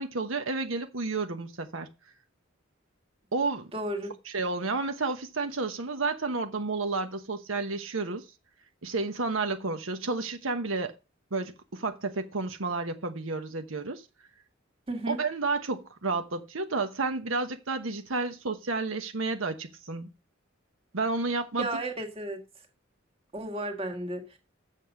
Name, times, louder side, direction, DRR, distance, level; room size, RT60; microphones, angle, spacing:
voice 1, 0.0-1.9 3.3-3.7 4.3-8.3 8.8-10.9 11.3-14.0 15.1-20.1 20.9-21.7, right 3 dB, 80° right, 1.1 m, -31 dB
voice 2, 3.7-4.1 14.9-15.2 21.6-22.4 23.3-24.4, right 1 dB, 30° right, 1.8 m, -33 dB
7.7 x 6.4 x 6.3 m
head